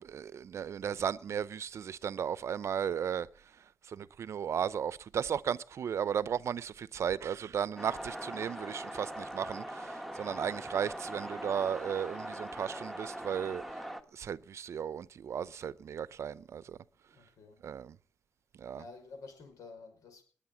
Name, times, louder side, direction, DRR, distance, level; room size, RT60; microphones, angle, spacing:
voice 1, 0.0-13.6 14.1-16.8 17.6-18.0 18.6-18.8, right 8 dB, 55° right, 0.6 m, -35 dB
sound 1, 7.8-14.0, right 1 dB, ahead, 1.2 m, -41 dB
voice 2, 10.1-10.5 17.1-17.6 18.7-20.2, left 4 dB, 90° left, 5.6 m, -51 dB
20.5 x 8.7 x 7.3 m
wide cardioid pair, 140°, 6 cm